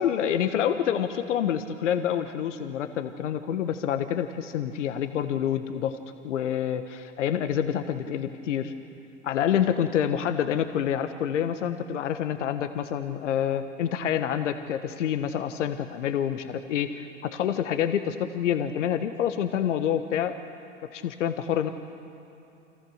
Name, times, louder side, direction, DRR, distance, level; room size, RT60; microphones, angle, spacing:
voice 1, 0.0-6.0 6.2-8.7 9.2-20.3 20.9-21.7, left 9 dB, 75° left, 8 dB, 1.4 m, -27 dB
29.5 x 26.0 x 6.5 m, 3.0 s
hypercardioid pair, 80°, 36 cm